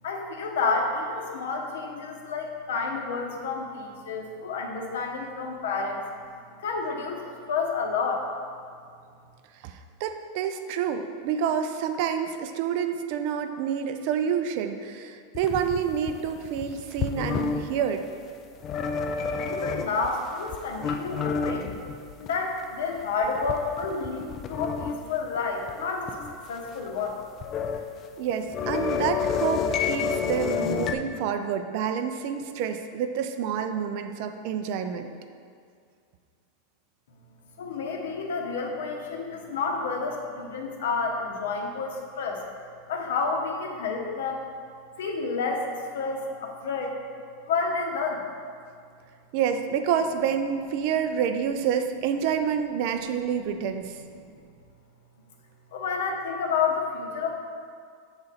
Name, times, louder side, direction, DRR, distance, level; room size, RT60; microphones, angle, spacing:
voice 1, 0.0-6.0 6.6-8.3 19.4-21.7 22.2-27.2 37.6-42.4 42.9-44.4 45.0-47.0 47.4-48.3 54.2-54.3 55.7-57.3, left 4 dB, 85° left, 2 dB, 0.9 m, -30 dB
voice 2, 9.6-18.0 28.2-35.1 49.3-54.0, right 7 dB, 45° right, 7 dB, 0.4 m, -28 dB
sound 1, 15.3-17.7 18.6-20.1 20.5-22.3 22.6-22.7 23.2-25.0 25.4-25.5 25.7-25.8 26.1-26.4 27.2-27.8 28.1-30.9, left 6 dB, 25° left, 0.3 m, -29 dB
7.1 x 3.9 x 4.0 m, 2.2 s
supercardioid pair, 165°, 0 cm